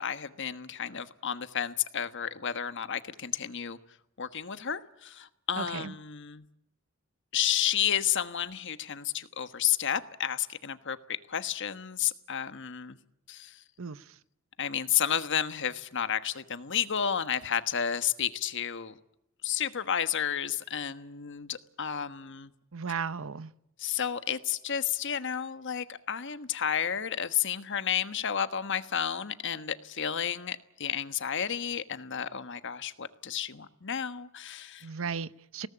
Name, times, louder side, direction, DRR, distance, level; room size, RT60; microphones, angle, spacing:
voice 1, 0.0-3.8 4.2-6.4 7.3-13.0 13.3-13.5 14.6-18.9 19.4-22.5 23.8-34.9, left 9 dB, 60° left, 1.3 m, -31 dB
voice 2, 5.6-5.9 13.8-14.0 22.7-23.5 34.8-35.7, right 5 dB, 65° right, 0.8 m, -35 dB
22.0 x 18.0 x 8.7 m
head